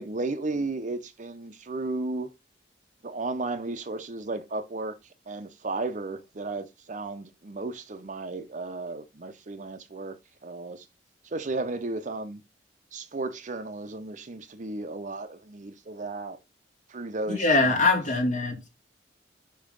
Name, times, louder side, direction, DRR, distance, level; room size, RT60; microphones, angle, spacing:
voice 1, 0.0-2.3 3.0-5.0 5.3-10.8 11.3-12.4 12.9-16.4 16.9-18.0, right 2 dB, 45° right, 0.6 m, -34 dB
voice 2, 17.3-18.7, left 3 dB, 45° left, 2.7 m, -23 dB
5.5 x 4.7 x 5.2 m
head